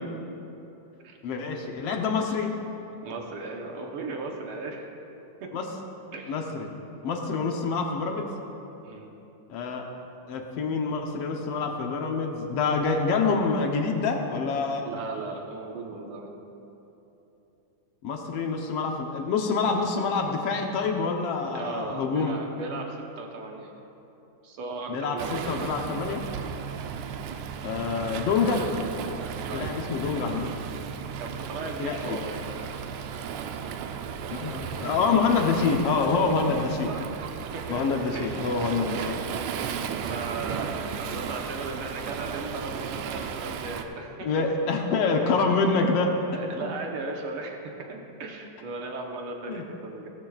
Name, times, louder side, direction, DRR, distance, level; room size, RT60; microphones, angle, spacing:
voice 1, 1.2-2.5 5.5-5.7 6.3-6.7 7.0-8.3 9.5-9.9 10.3-14.9 18.0-22.4 24.9-26.2 27.6-28.6 29.5-30.5 31.8-32.2 34.3-36.9 37.7-39.2 44.2-46.1 46.6-46.7 49.5-49.6, left 4 dB, 65° left, 2 dB, 1.6 m, -26 dB
voice 2, 3.0-4.9 5.4-5.6 6.1-6.3 7.3-7.5 8.8-9.1 14.8-16.3 21.5-23.7 24.4-25.5 29.4-29.7 31.2-32.5 36.2-36.5 36.9-38.5 38.8-39.3 39.7-45.3 46.3-50.1, right 3 dB, 65° right, 1 dB, 1.4 m, -37 dB
Waves surf, 25.2-43.8, right 7 dB, 80° right, 1.9 m, -35 dB
18.0 x 13.0 x 2.4 m, 3.0 s
omnidirectional pair, 3.5 m